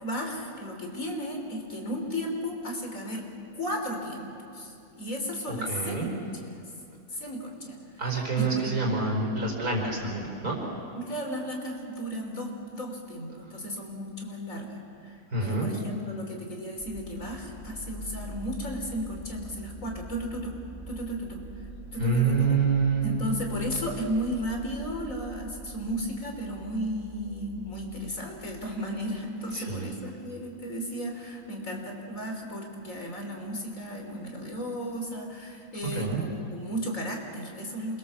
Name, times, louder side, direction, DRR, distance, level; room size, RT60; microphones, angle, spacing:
voice 1, 0.0-3.2 3.5-6.1 6.4-6.6 7.1-7.8 8.4-8.7 10.9-20.5 20.9-21.4 21.9-22.5 23.0-38.0, equal, 60° left, 2 dB, 3.8 m, -34 dB
voice 2, 5.5-6.1 8.0-10.6 15.3-15.7 22.0-23.2 29.5-29.9 36.0-36.2, right 4 dB, 70° right, -1 dB, 5.3 m, -27 dB
sound 1, 16.8-29.4, right 1 dB, 40° right, 4.2 m, -45 dB
27.5 x 22.0 x 7.3 m, 2.6 s
omnidirectional pair, 1.6 m